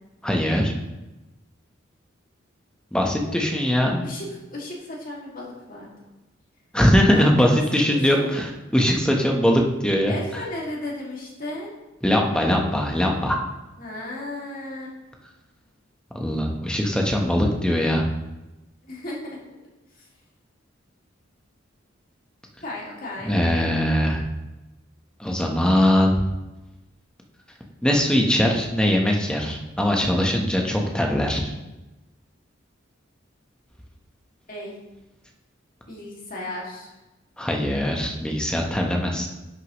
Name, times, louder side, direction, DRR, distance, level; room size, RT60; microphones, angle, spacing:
voice 1, 0.2-0.7 2.9-4.1 6.7-10.1 12.0-13.4 16.1-18.1 23.2-24.2 25.2-26.2 27.8-31.5 37.4-39.3, equal, 5° left, 0 dB, 1.0 m, -21 dB
voice 2, 4.0-5.9 7.1-7.6 7.9-8.4 10.1-11.7 13.8-14.9 18.8-19.4 22.6-23.4 34.5-34.7 35.9-36.9, left 1 dB, 45° left, -3 dB, 2.2 m, -34 dB
10.5 x 6.5 x 3.1 m, 1.0 s
head